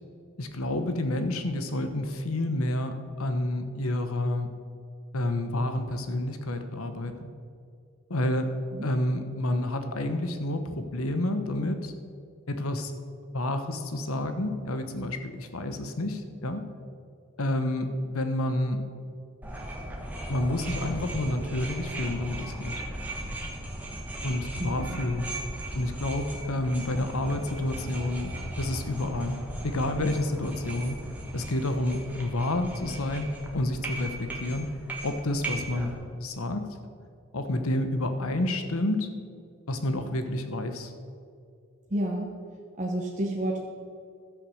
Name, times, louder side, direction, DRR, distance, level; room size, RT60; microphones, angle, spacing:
voice 1, 0.4-4.5 5.1-7.3 8.1-8.5 8.8-11.9 12.5-12.9 13.3-16.7 17.4-18.8 20.3-22.8 24.2-25.3 25.7-28.3 28.6-31.0 31.3-34.7 35.0-36.7 37.3-39.1 39.7-40.9, left 1 dB, 80° left, 8 dB, 1.1 m, -29 dB
sound 1, 19.4-35.9, right 1 dB, 5° right, 1.4 m, -37 dB
voice 2, 24.6-25.0 41.9-42.3 42.8-43.6, right 1 dB, 35° right, -1 dB, 0.9 m, -30 dB
12.0 x 8.2 x 6.4 m, 2.4 s
head